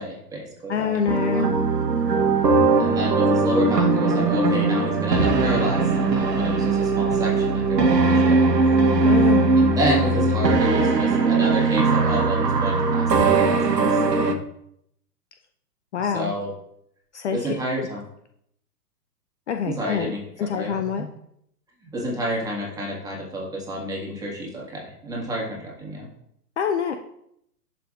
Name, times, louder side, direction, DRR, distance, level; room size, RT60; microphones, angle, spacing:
voice 1, 0.0-1.0 1.3-1.7 2.7-8.6 9.6-14.4 16.0-16.5 17.3-18.0 19.7-21.1 21.8-26.1, right 1 dB, 5° right, -3 dB, 1.8 m, -30 dB
voice 2, 0.7-1.5 9.0-9.5 15.9-16.3 17.1-17.5 17.8-17.9 19.5-21.0 26.6-26.9, left 7 dB, 45° left, 6 dB, 0.6 m, -25 dB
sound 1, 1.1-14.3, right 3 dB, 80° right, 1.2 m, -20 dB
11.0 x 5.7 x 2.5 m, 0.74 s
hypercardioid pair, 130°, 48 cm